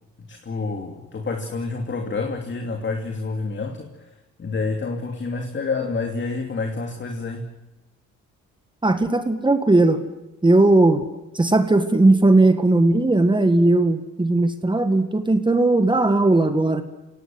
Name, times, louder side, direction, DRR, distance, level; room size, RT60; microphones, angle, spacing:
voice 1, 0.2-4.1 4.4-7.5, left 3 dB, 40° left, 4 dB, 2.8 m, -28 dB
voice 2, 8.8-10.0 10.4-11.0 11.3-16.8, right 2 dB, 15° right, 8 dB, 1.9 m, -17 dB
26.5 x 18.0 x 7.8 m, 1.0 s
cardioid pair, 90°, 30 cm